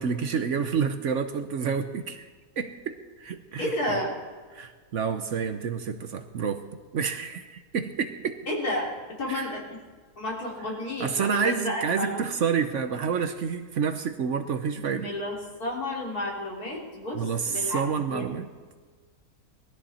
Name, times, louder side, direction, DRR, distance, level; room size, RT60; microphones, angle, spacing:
voice 1, 0.0-2.3 2.6-4.0 4.5-6.6 6.9-8.4 9.3-9.5 11.0-15.1 17.1-18.5, right 6 dB, 60° right, 9 dB, 1.0 m, -29 dB
voice 2, 3.6-4.1 8.5-8.9 9.2-9.6 10.2-12.2 14.9-17.8 18.1-18.2, left 1 dB, 75° left, -2 dB, 3.8 m, -31 dB
20.0 x 13.5 x 4.3 m, 1.5 s
omnidirectional pair, 1.6 m